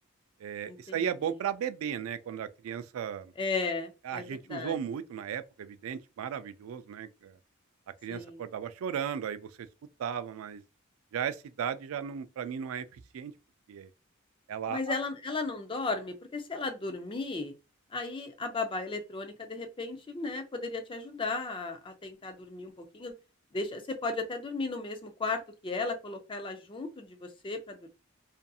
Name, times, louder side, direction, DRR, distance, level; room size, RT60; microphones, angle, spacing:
voice 1, 0.4-3.3 4.0-7.4 8.0-9.7 10.0-10.6 11.1-13.3 13.7-13.9 14.5-14.9, right 8 dB, 70° right, 0.3 m, -35 dB
voice 2, 3.4-4.2 4.5-4.8 8.1-8.4 14.7-17.5 17.9-23.1 23.5-27.9, left 3 dB, 25° left, 0.4 m, -35 dB
2.6 x 2.5 x 2.3 m
head